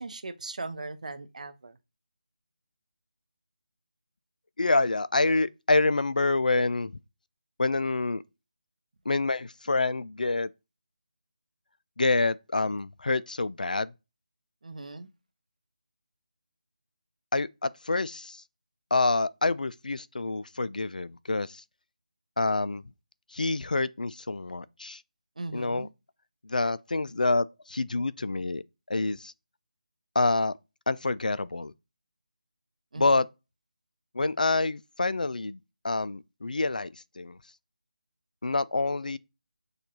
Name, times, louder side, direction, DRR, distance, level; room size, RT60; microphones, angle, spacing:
voice 1, 0.0-1.8 14.6-15.1 25.4-25.9 32.9-33.2, right 3 dB, 60° right, 0.6 m, -38 dB
voice 2, 4.6-6.9 7.6-8.2 9.1-10.5 12.0-13.9 17.3-18.4 18.9-21.6 22.4-22.8 23.3-25.0 25.5-25.9 26.4-28.6 28.9-29.3 30.2-30.5 30.9-31.7 33.0-33.3 34.1-35.6 35.8-37.4 38.4-39.2, left 3 dB, 75° left, 0.3 m, -27 dB
6.5 x 2.4 x 2.9 m
figure-of-eight pair, 160°, 4 cm